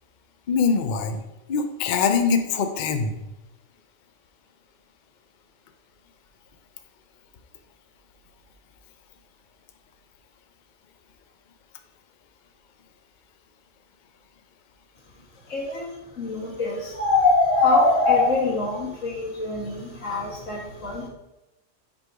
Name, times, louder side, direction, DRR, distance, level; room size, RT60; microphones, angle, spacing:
voice 1, 0.5-1.2 1.5-3.2, left 5 dB, 55° left, 7 dB, 0.5 m, -23 dB
voice 2, 15.5-21.1, left 3 dB, 75° left, -5 dB, 2.1 m, -23 dB
5.9 x 3.8 x 4.6 m, 0.96 s
omnidirectional pair, 1.3 m